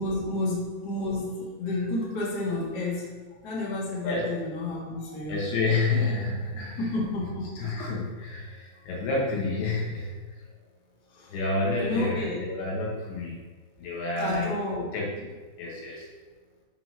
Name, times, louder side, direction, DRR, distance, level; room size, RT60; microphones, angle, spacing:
voice 1, 0.0-3.0 3.4-5.4 6.8-7.6 11.1-11.3 11.7-12.4 14.2-14.8, left 2 dB, 50° left, -6 dB, 1.2 m, -30 dB
voice 2, 5.3-6.9 7.6-10.5 11.3-13.4 13.8-15.1 15.6-16.1, left 3 dB, 70° left, -4 dB, 3.3 m, -29 dB
7.7 x 3.0 x 5.7 m, 1.3 s
omnidirectional pair, 5.0 m